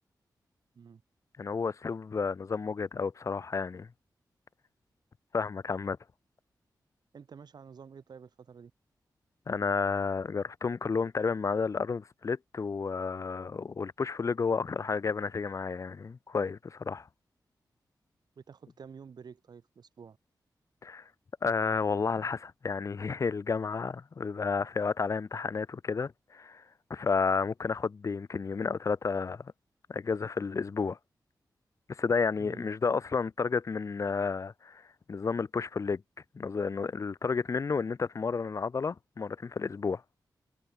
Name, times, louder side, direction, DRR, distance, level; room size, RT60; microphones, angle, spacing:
voice 1, 1.4-3.9 5.3-6.0 9.5-17.1 20.8-21.0 21.4-26.6 26.9-29.5 29.9-31.0 31.9-34.8 35.1-36.0 36.3-40.0, left 5 dB, 45° left, 0.6 m, -31 dB
voice 2, 7.1-8.7 18.4-20.2 32.4-32.7, right 6 dB, 70° right, 1.8 m, -49 dB
wide cardioid pair, 85°, 7 cm